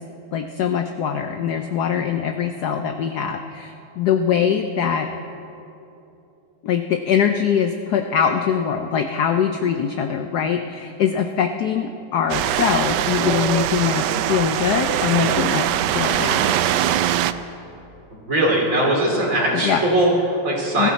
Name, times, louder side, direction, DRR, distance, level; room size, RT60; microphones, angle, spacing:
voice 1, 0.3-5.1 6.6-15.7 15.9-16.6 19.5-19.8 20.8-20.9, left 8 dB, 75° left, 6 dB, 0.9 m, -22 dB
sound 1, 12.3-17.3, right 11 dB, 85° right, 0.9 m, -22 dB
voice 2, 18.1-20.9, right 1 dB, 35° right, -3 dB, 3.2 m, -20 dB
21.5 x 14.0 x 4.2 m, 2.9 s
omnidirectional pair, 2.4 m